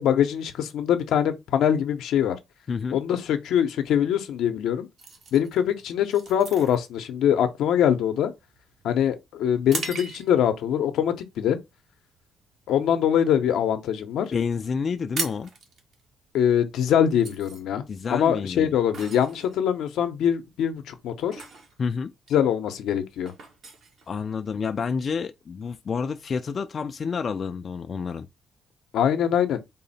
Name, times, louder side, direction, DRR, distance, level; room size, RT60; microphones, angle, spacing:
voice 1, 0.0-2.4 2.9-4.9 5.3-8.3 8.8-11.6 12.7-14.3 16.3-17.8 18.1-21.4 22.3-23.3 28.9-29.6, left 9 dB, 80° left, 0.6 m, -23 dB
voice 2, 2.7-3.0 14.3-15.5 17.9-18.7 21.8-22.1 24.1-28.3, left 5 dB, 45° left, 0.3 m, -29 dB
sound 1, 5.0-10.6 11.1-11.3 11.9-12.2 12.5-13.7 14.0-14.1 14.3-14.4 14.7-24.7, right 4 dB, 60° right, 1.2 m, -39 dB
3.7 x 2.1 x 4.0 m
cardioid pair, 90°, 0 cm